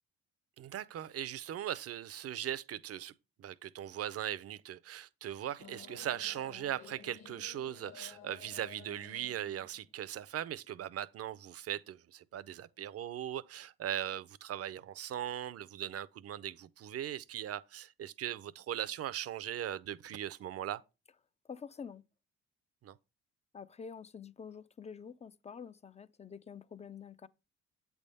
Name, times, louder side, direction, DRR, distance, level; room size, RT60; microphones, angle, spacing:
voice 1, 0.6-3.1 3.4-20.8 22.8-23.0, right 11 dB, 50° right, 0.5 m, -39 dB
sound 1, 5.6-10.7, left 6 dB, 55° left, 1.3 m, -54 dB
voice 2, 21.5-22.0 23.5-27.3, left 6 dB, 25° left, 0.4 m, -47 dB
8.1 x 3.5 x 5.4 m
cardioid pair, 90°, 30 cm